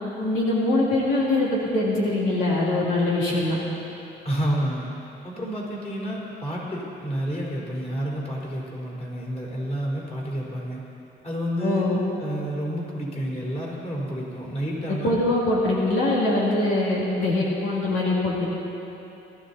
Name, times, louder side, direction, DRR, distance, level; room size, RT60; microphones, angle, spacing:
voice 1, 0.2-3.6 11.6-12.0 14.9-18.5, left 2 dB, 85° left, -5 dB, 2.9 m, -23 dB
voice 2, 4.2-4.9 5.2-10.8 11.2-11.9 12.2-15.1, equal, 30° left, -4 dB, 4.3 m, -29 dB
20.5 x 13.0 x 4.2 m, 3.0 s
cardioid pair, 90°, 20 cm